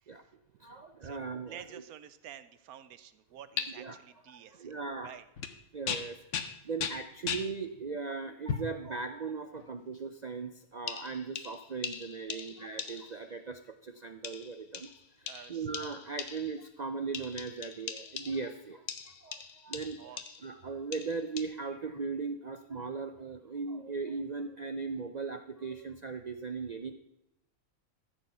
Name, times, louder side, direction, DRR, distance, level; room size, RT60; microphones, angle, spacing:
voice 1, 0.0-0.3 1.0-1.2 1.5-4.7 5.0-5.3 7.7-7.8 15.2-15.7 20.0-20.5, right 10 dB, 90° right, 14 dB, 1.2 m, -50 dB
voice 2, 0.6-1.8 3.8-4.0 4.3-5.1 5.7-6.2 6.6-14.9 15.2-20.0 20.4-26.9, right 4 dB, 65° right, 7 dB, 0.4 m, -38 dB
sound 1, 3.6-3.7 5.4-5.6 5.9-7.5 8.5-8.8 9.6-9.7 10.9-13.3 14.2-16.6 17.1-18.5 18.9-20.5 20.9-21.4, left 7 dB, 60° left, 1.1 m, -39 dB
13.5 x 7.1 x 5.5 m, 0.88 s
omnidirectional pair, 1.5 m